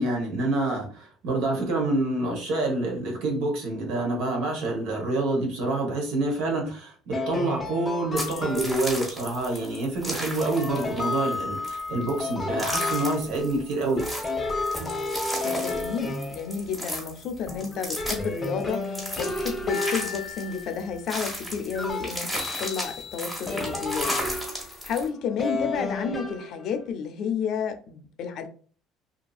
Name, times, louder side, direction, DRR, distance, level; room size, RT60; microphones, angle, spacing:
voice 1, 0.0-14.0, right 2 dB, 85° right, 1.0 m, -27 dB
sound 1, 7.1-9.1 10.4-13.6 14.0-17.0 17.5-21.0 21.7-24.8 25.4-26.8, left 3 dB, 25° left, 0.8 m, -32 dB
sound 2, 8.2-25.1, equal, 5° right, 1.3 m, -34 dB
voice 2, 15.4-24.1 24.5-28.5, left 6 dB, 65° left, 0.5 m, -31 dB
2.7 x 2.5 x 2.3 m
cardioid pair, 105°, 0 cm